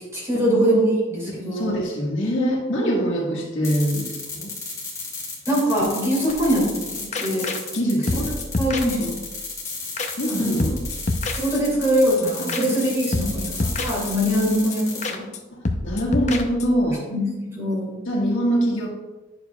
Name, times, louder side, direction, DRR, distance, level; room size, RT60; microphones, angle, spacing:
voice 1, 0.1-1.7 5.5-7.5 8.1-8.2 8.6-9.2 10.3-10.6 11.3-15.2 17.1-17.9, equal, 15° right, -5 dB, 2.4 m, -23 dB
voice 2, 1.3-4.5 7.7-8.3 10.2-10.8 13.6-13.7 15.5-17.0 18.1-18.9, equal, 75° left, -4 dB, 1.7 m, -24 dB
sound 1, 3.6-15.1, left 4 dB, 15° left, 1.9 m, -33 dB
sound 2, 6.3-6.8 7.1-7.8 8.1-9.4 9.7-9.8 10.0-10.3 10.6-11.9 12.2-12.3 12.5-12.9 13.1-14.4 14.7-14.8 15.0-15.4 15.7-16.9, left 2 dB, 35° left, 0.5 m, -28 dB
10.0 x 6.5 x 2.3 m, 1.2 s
head